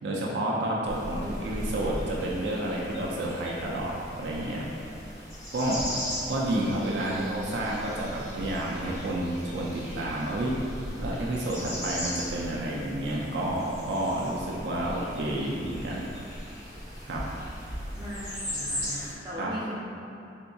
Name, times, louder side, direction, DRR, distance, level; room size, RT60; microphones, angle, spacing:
voice 1, 0.0-4.6 5.5-10.6 11.0-16.1 17.0-17.3 19.4-19.5, right 1 dB, 75° right, -4 dB, 0.4 m, -30 dB
sound 1, 0.9-19.1, equal, 20° left, 0.9 m, -38 dB
voice 2, 17.9-19.8, equal, 25° right, -8 dB, 0.7 m, -38 dB
3.5 x 2.7 x 2.2 m, 2.6 s
head